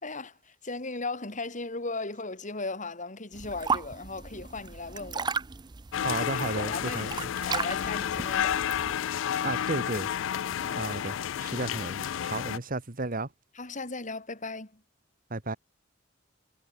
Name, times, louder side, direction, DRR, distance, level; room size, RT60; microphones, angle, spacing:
voice 1, 0.0-5.3 6.2-8.7 10.6-10.9 13.5-14.8, left 3 dB, 40° left, 3.8 m, -37 dB
sound 1, 3.3-9.0, right 5 dB, 25° right, 0.5 m, -35 dB
sound 2, 5.9-12.6, left 9 dB, 80° left, 0.4 m, -31 dB
voice 2, 6.0-7.1 9.4-10.1 10.7-13.3 15.3-15.6, right 2 dB, 45° right, 1.7 m, -33 dB
head